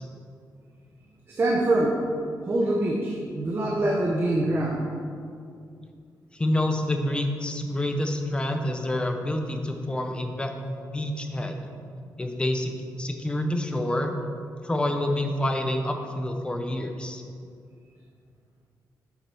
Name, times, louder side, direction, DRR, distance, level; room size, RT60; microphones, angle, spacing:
voice 1, 1.3-2.0 2.5-4.8, right 1 dB, 30° right, -1 dB, 0.8 m, -24 dB
voice 2, 6.3-11.6 12.2-14.1 14.6-17.2, left 1 dB, 15° left, 5 dB, 0.7 m, -28 dB
8.2 x 7.5 x 4.8 m, 2.3 s
wide cardioid pair, 180°, 7 cm